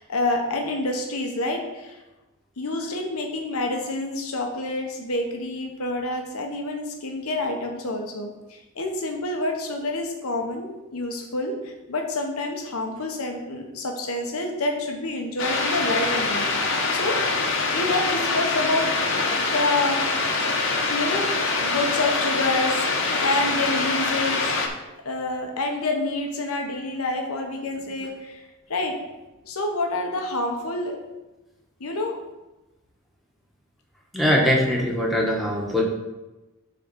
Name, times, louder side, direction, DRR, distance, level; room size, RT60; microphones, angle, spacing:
voice 1, 0.0-2.0 2.6-17.2 17.7-18.9 19.5-20.1 20.9-21.3 21.6-22.9 23.2-24.5 25.0-28.4 28.7-29.0 29.4-31.0 31.8-32.2, left 2 dB, 80° left, 2 dB, 1.0 m, -28 dB
sound 1, 15.4-24.7, left 3 dB, 60° left, 1.0 m, -24 dB
voice 2, 34.1-35.8, equal, ahead, -3 dB, 1.2 m, -21 dB
7.0 x 3.8 x 6.2 m, 1.1 s
head